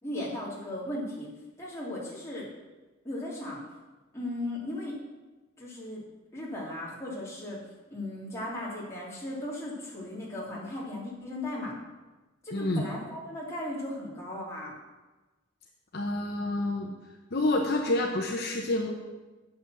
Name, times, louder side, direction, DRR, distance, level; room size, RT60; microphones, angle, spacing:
voice 1, 0.0-1.3 1.6-2.5 3.0-3.6 4.1-5.0 5.6-6.0 6.3-7.6 7.9-11.8 12.4-14.7, left 1 dB, 15° left, -6 dB, 2.7 m, -36 dB
voice 2, 12.5-12.8 15.9-16.9 17.3-18.9, left 2 dB, 50° left, 0 dB, 0.9 m, -28 dB
9.0 x 6.0 x 6.8 m, 1.2 s
head